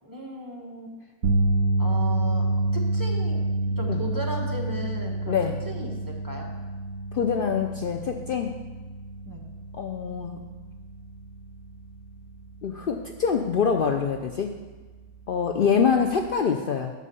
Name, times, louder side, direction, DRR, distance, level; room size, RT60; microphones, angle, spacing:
voice 1, 0.0-0.9 1.8-2.4 2.7-5.4 5.6-6.5 9.3-9.5, right 1 dB, 15° right, -1 dB, 1.0 m, -36 dB
sound 1, 1.2-13.5 13.8-14.1 16.3-16.4, right 2 dB, 75° right, 1.8 m, -28 dB
voice 2, 7.1-8.6 9.7-10.4 12.6-14.5 15.3-16.9, left 6 dB, 80° left, 4 dB, 0.4 m, -25 dB
8.3 x 5.4 x 6.8 m, 1.3 s
omnidirectional pair, 1.6 m